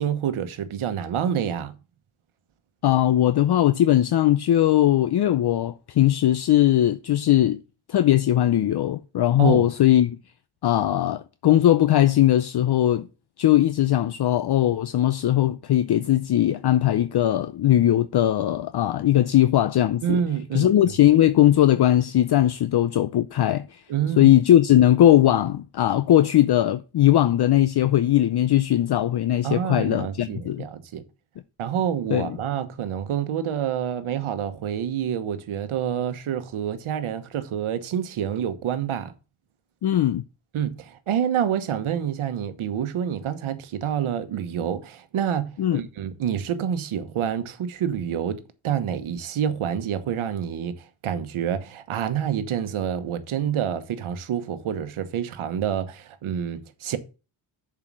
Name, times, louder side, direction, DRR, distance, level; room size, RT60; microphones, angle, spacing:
voice 1, 0.0-1.8 9.4-9.7 20.0-20.9 23.9-24.3 29.4-31.0 31.6-39.1 40.5-57.0, right 9 dB, 80° right, 1.1 m, -27 dB
voice 2, 2.8-7.6 7.9-10.2 10.6-13.1 13.4-20.2 20.5-23.8 24.2-30.6 32.1-32.3 39.8-40.2 45.6-45.8, left 12 dB, 55° left, 0.6 m, -19 dB
7.1 x 4.9 x 6.2 m
cardioid pair, 80°, 48 cm